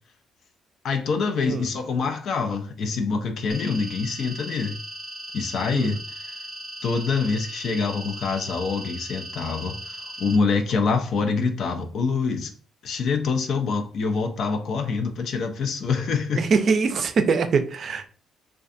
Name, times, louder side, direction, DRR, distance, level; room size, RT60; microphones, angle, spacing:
voice 1, 0.8-4.8 5.3-6.3 6.8-12.5 12.8-16.4, left 4 dB, 65° left, 0.4 m, -25 dB
sound 1, 3.5-10.3, equal, 50° left, 1.0 m, -38 dB
voice 2, 16.3-18.1, right 5 dB, 55° right, 0.3 m, -23 dB
2.4 x 2.2 x 2.5 m
cardioid pair, 90°, 0 cm